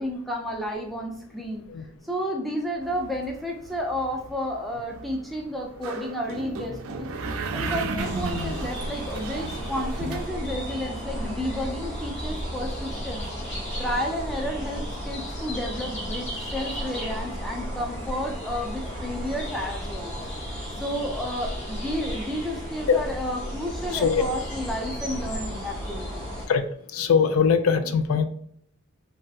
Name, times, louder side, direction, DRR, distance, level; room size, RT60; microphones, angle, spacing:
voice 1, 0.0-1.6 2.0-7.1 7.5-13.2 13.8-16.3 16.5-20.1 20.8-26.2, equal, ahead, -1 dB, 0.5 m, -31 dB
sound 1, 2.8-10.2, right 3 dB, 75° right, 0.4 m, -34 dB
sound 2, 8.0-26.5, equal, 30° left, 1.3 m, -34 dB
voice 2, 23.9-24.2 26.5-26.6 26.9-28.2, left 6 dB, 75° left, 9 dB, 0.3 m, -21 dB
3.2 x 2.8 x 2.3 m, 0.67 s
head